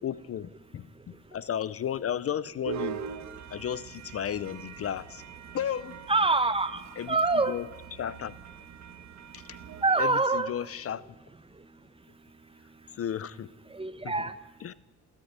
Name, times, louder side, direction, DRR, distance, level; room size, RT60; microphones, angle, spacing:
voice 1, 0.0-0.9 1.3-3.0 3.5-5.2 5.5-6.0 7.0-8.3 9.3-9.6 10.0-11.1 13.0-13.5 14.0-14.1 14.6-14.7, left 9 dB, 50° left, 0.7 m, -34 dB
sound 1, 2.6-10.1, right 9 dB, 65° right, 1.6 m, -42 dB
voice 2, 6.1-6.8 7.1-7.6 9.8-10.5 13.7-14.3, right 3 dB, 20° right, 1.4 m, -25 dB
27.0 x 13.5 x 8.9 m
cardioid pair, 90°, 30 cm